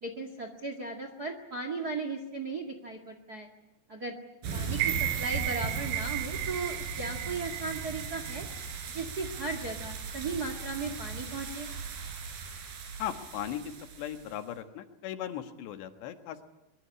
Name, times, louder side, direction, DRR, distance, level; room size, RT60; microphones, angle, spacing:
voice 1, 0.0-3.5 3.9-4.1 4.5-8.5 8.9-11.7, right 3 dB, 35° right, 7 dB, 1.6 m, -36 dB
sound 1, 4.4-14.4, right 5 dB, 60° right, 5.2 m, -38 dB
sound 2, 4.7-8.9 9.3-9.4, right 14 dB, 80° right, 3.7 m, -35 dB
voice 2, 13.0-13.6 14.0-16.5, left 11 dB, 80° left, 8 dB, 3.8 m, -37 dB
24.0 x 23.0 x 9.8 m, 0.89 s
omnidirectional pair, 4.9 m